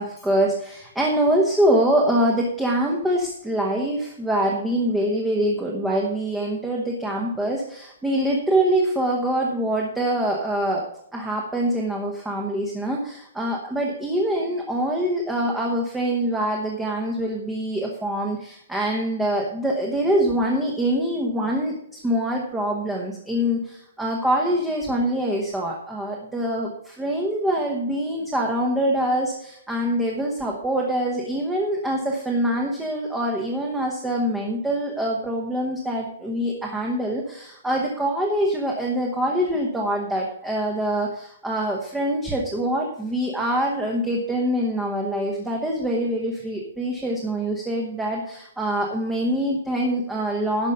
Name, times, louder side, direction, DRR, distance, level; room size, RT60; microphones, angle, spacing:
voice 1, 0.0-50.7, right 1 dB, 5° right, -1 dB, 1.0 m, -24 dB
11.5 x 7.1 x 5.6 m, 0.73 s
hypercardioid pair, 180°, 0 cm